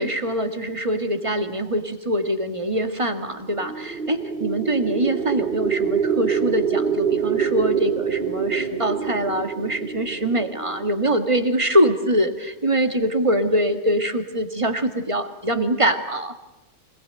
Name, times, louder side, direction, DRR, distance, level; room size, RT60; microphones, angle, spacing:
voice 1, 0.0-16.3, right 1 dB, 20° right, 7 dB, 1.7 m, -23 dB
sound 1, 3.4-11.6, right 7 dB, 35° right, 1.2 m, -26 dB
26.0 x 19.5 x 8.9 m, 0.95 s
omnidirectional pair, 1.9 m